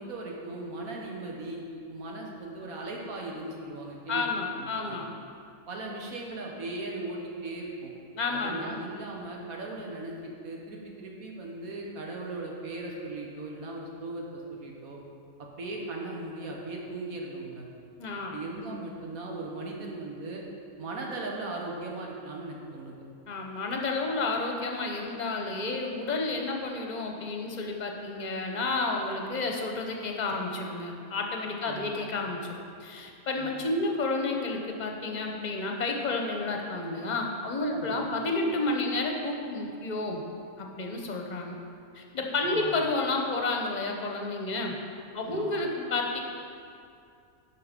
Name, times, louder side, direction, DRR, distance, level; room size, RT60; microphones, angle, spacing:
voice 1, 0.0-4.2 4.6-5.0 5.7-7.9 8.3-15.0 15.4-17.7 18.3-20.4 20.8-22.9 31.6-31.9 33.4-33.6 37.7-38.0 42.4-42.7 45.2-45.6, right 2 dB, 85° right, -1 dB, 1.7 m, -38 dB
voice 2, 4.1-5.1 8.1-8.8 18.0-18.4 23.3-40.2 40.6-41.6 41.9-44.8 45.1-46.2, left 3 dB, 35° left, 2 dB, 0.9 m, -31 dB
11.0 x 4.7 x 5.2 m, 2.4 s
omnidirectional pair, 1.5 m